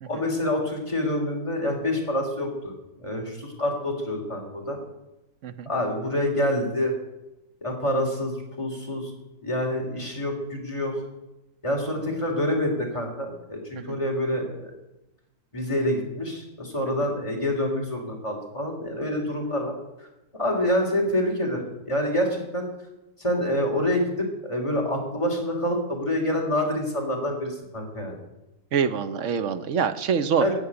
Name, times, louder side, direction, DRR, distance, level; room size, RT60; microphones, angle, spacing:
voice 1, 0.1-2.7 3.0-4.8 5.6-6.9 7.6-9.1 9.4-11.0 11.6-14.7 15.5-19.7 20.3-22.7 23.2-28.1 30.4-30.5, left 1 dB, 20° left, 0 dB, 3.3 m, -27 dB
voice 2, 28.7-30.4, right 7 dB, 55° right, 11 dB, 1.1 m, -25 dB
15.5 x 6.6 x 9.9 m, 0.96 s
omnidirectional pair, 1.8 m